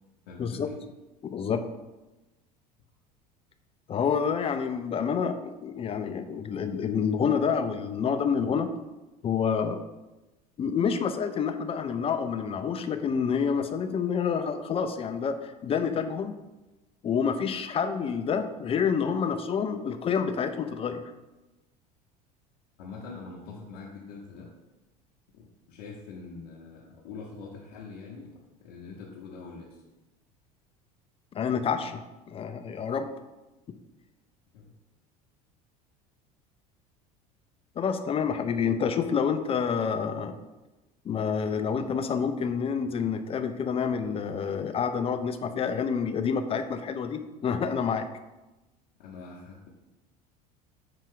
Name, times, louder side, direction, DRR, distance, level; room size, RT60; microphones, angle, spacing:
voice 1, 0.3-0.8 22.8-24.5 25.4-28.3 28.6-29.8 34.5-34.7 49.0-49.7, left 4 dB, 75° left, -4 dB, 0.8 m, -44 dB
voice 2, 1.2-1.6 3.9-8.7 9.2-9.8 10.6-16.4 17.0-21.0 31.3-33.1 37.8-40.3 41.1-48.1, left 6 dB, 30° left, 9 dB, 0.4 m, -28 dB
5.5 x 2.4 x 3.7 m, 1.1 s
hypercardioid pair, 80°, 20 cm